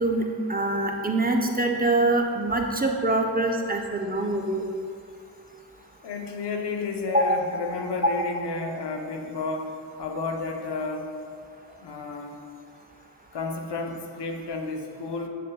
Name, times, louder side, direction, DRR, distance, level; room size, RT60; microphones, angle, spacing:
voice 1, 0.0-4.6 7.1-7.4, right 2 dB, 20° right, 2 dB, 0.7 m, -24 dB
voice 2, 6.0-11.1 11.8-12.4 13.3-15.3, left 3 dB, 65° left, 3 dB, 0.9 m, -31 dB
8.4 x 6.6 x 2.3 m, 2.3 s
supercardioid pair, 45°, 45 cm